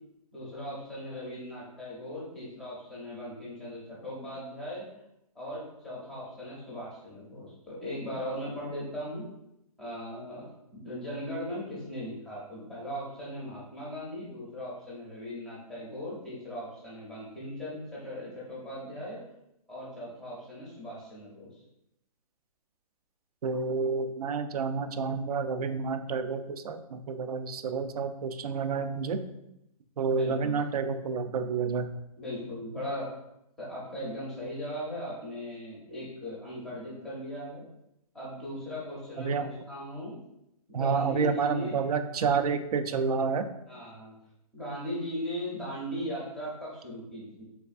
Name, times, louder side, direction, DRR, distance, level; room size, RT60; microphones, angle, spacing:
voice 1, 0.3-4.9 5.3-9.2 9.8-10.5 10.7-19.2 19.7-21.5 30.1-30.6 32.2-33.1 33.6-37.6 38.1-40.2 40.7-41.8 43.7-44.2 44.5-47.4, equal, ahead, -7 dB, 0.5 m, -38 dB
voice 2, 23.4-29.2 30.0-31.9 39.2-39.5 40.7-43.5, right 5 dB, 90° right, 9 dB, 0.4 m, -29 dB
3.3 x 3.3 x 2.4 m, 0.82 s
hypercardioid pair, 165°, 19 cm